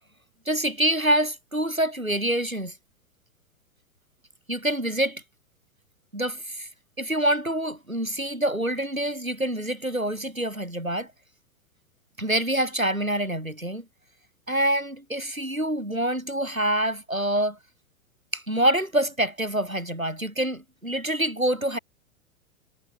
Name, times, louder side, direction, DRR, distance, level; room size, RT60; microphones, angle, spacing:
voice 1, 0.5-2.7 4.5-5.2 6.1-6.7 7.0-11.1 12.2-13.9 14.5-17.6 18.3-21.8, right 1 dB, 90° right, 7.0 m, -26 dB
figure-of-eight pair, 105°, 40 cm